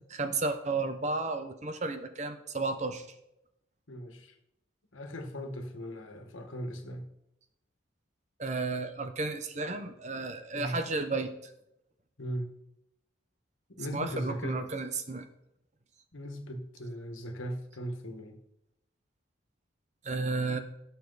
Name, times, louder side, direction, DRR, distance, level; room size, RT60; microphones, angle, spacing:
voice 1, 0.1-3.1 8.4-11.3 13.9-15.2 20.0-20.6, right 3 dB, 35° right, 8 dB, 0.9 m, -33 dB
voice 2, 3.9-4.3 4.9-7.1 10.5-10.8 12.2-12.5 13.7-14.7 16.1-18.4, equal, 90° left, 5 dB, 1.6 m, -38 dB
16.5 x 6.8 x 4.1 m, 0.84 s
head